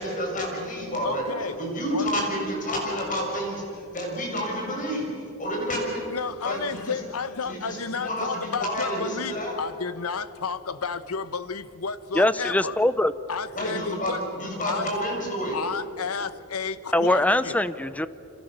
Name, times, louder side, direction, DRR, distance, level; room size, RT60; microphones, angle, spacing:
voice 1, 0.0-5.1 5.4-6.1 6.4-7.0 7.4-9.5 13.5-15.6, equal, 40° left, 0 dB, 6.8 m, -29 dB
voice 2, 1.0-1.6 1.9-2.1 6.1-12.8 13.3-14.2 14.6-14.9 15.5-17.6, left 5 dB, 80° left, 14 dB, 1.1 m, -32 dB
voice 3, 12.1-13.1 16.9-18.1, left 1 dB, 5° left, 14 dB, 0.7 m, -22 dB
29.5 x 26.0 x 6.8 m, 2.6 s
head